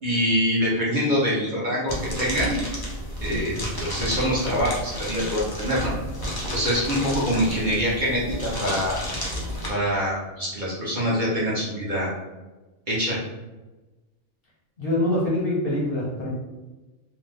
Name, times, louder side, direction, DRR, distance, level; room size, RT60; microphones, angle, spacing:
voice 1, 0.0-2.6 3.2-5.9 6.5-9.0 9.7-12.1 12.9-13.2, equal, 45° right, -7 dB, 0.8 m, -25 dB
sound 1, 1.9-9.7, equal, 35° left, 0.4 m, -31 dB
voice 2, 14.8-16.3, left 1 dB, 55° left, -4 dB, 0.8 m, -24 dB
2.6 x 2.2 x 3.3 m, 1.1 s
omnidirectional pair, 1.4 m